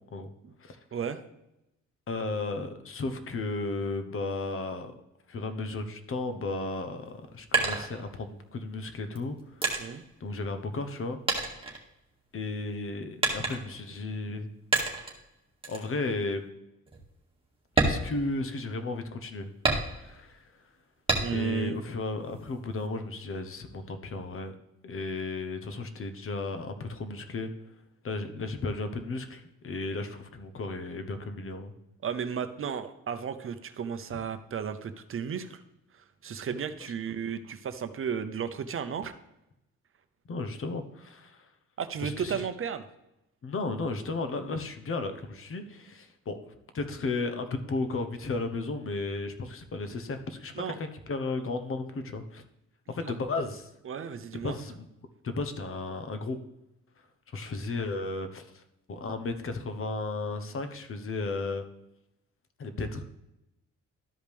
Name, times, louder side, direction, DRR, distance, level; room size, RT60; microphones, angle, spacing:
voice 1, 0.9-1.2 9.8-10.0 21.2-21.8 32.0-35.6 35.9-39.1 41.8-42.8 50.6-50.8 53.0-53.1 53.8-54.6, right 7 dB, 45° right, 10 dB, 0.7 m, -34 dB
voice 2, 2.1-4.9 5.3-9.8 10.2-11.2 12.3-14.5 15.7-16.4 17.8-19.5 20.0-20.5 21.3-24.5 24.8-27.5 28.0-31.7 40.3-41.5 42.0-42.5 43.4-46.4 46.7-52.4 52.9-53.7 54.3-54.7 55.2-56.4 57.0-58.6 58.9-61.6 62.6-63.0, left 3 dB, 45° left, 8 dB, 1.1 m, -34 dB
sound 1, 7.0-8.5 9.1-11.0 11.3-12.4 13.2-13.9 14.7-15.2 15.6-15.9 16.3-16.4 16.9-17.0 17.6-18.9 19.6-20.3 21.1-21.6 22.0-22.9, right 3 dB, 20° right, 2.0 m, -29 dB
13.0 x 5.1 x 3.4 m, 0.89 s
cardioid pair, 90°, 30 cm